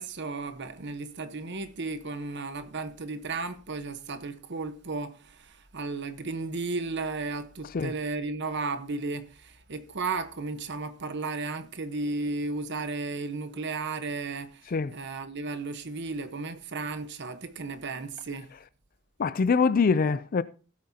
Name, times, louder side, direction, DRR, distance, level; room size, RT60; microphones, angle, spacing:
voice 1, 0.0-18.5, right 3 dB, 55° right, 1.1 m, -34 dB
voice 2, 19.2-20.4, left 5 dB, 40° left, 0.4 m, -24 dB
16.5 x 8.5 x 2.8 m
head